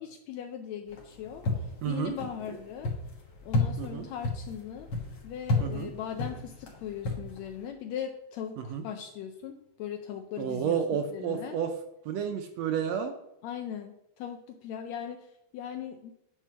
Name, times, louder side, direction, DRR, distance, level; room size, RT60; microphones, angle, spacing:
voice 1, 0.0-2.9 3.4-4.9 5.2-10.8 11.1-11.6 13.4-16.1, left 9 dB, 75° left, 5 dB, 1.7 m, -39 dB
sound 1, 0.9-7.7, left 2 dB, 45° left, 1.7 m, -33 dB
voice 2, 1.8-2.2 3.8-4.1 5.6-5.9 8.6-8.8 10.4-11.7 12.1-13.1, right 8 dB, 75° right, 6 dB, 1.7 m, -31 dB
9.2 x 4.3 x 5.9 m, 0.83 s
omnidirectional pair, 3.4 m